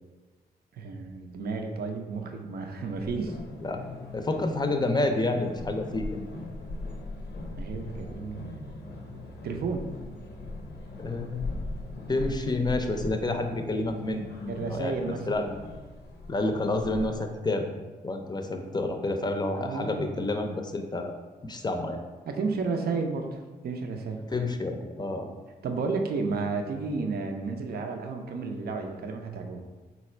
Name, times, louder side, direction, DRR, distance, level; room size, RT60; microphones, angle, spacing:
voice 1, 0.8-3.4 7.6-8.6 9.4-9.9 14.5-15.4 19.5-20.4 22.3-23.4 23.6-24.2 25.6-29.6, right 4 dB, 65° right, 4 dB, 0.5 m, -32 dB
sound 1, 2.9-17.2, left 2 dB, 80° left, 0.6 m, -40 dB
voice 2, 4.1-6.2 11.0-11.6 12.1-15.6 16.3-17.7 18.0-21.1 21.4-22.0 24.3-25.3, left 2 dB, 25° left, 5 dB, 0.5 m, -29 dB
4.0 x 2.3 x 4.3 m, 1.3 s
cardioid pair, 60°, 17 cm